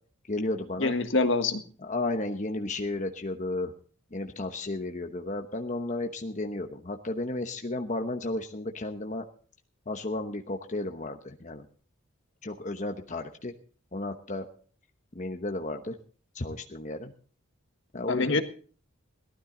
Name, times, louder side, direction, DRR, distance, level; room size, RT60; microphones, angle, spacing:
voice 1, 0.3-0.9 1.8-3.7 4.1-9.3 9.9-11.7 12.4-13.5 13.9-14.5 15.1-16.0 16.3-17.1 17.9-18.4, left 2 dB, 35° left, 4 dB, 1.0 m, -33 dB
voice 2, 0.8-1.6 18.1-18.4, left 3 dB, 60° left, 8 dB, 1.5 m, -25 dB
18.0 x 13.0 x 3.9 m, 0.42 s
head